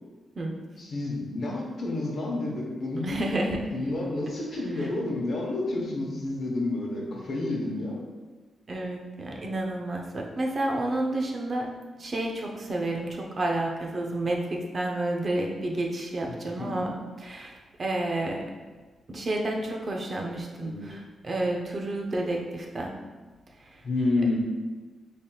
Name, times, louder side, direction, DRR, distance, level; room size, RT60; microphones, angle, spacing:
voice 1, 0.8-3.3 3.7-8.0 16.3-16.9 20.6-20.9 23.8-24.4, left 2 dB, 65° left, -2 dB, 0.9 m, -30 dB
voice 2, 3.0-3.6 4.8-4.9 8.7-11.7 12.0-16.9 17.2-18.4 19.1-22.9, right 1 dB, 45° right, 0 dB, 0.6 m, -30 dB
4.0 x 3.3 x 2.3 m, 1.3 s
cardioid pair, 85°, 0 cm